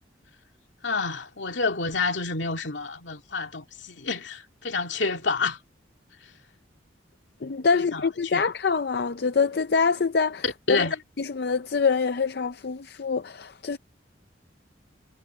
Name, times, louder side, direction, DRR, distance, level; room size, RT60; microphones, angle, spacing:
voice 1, 0.8-5.6 6.2-6.3 7.7-8.4 10.4-11.0, left 4 dB, 80° left, 2.5 m, -29 dB
voice 2, 7.4-10.4 10.7-10.9 11.2-13.8, left 5 dB, 55° left, 0.5 m, -25 dB
head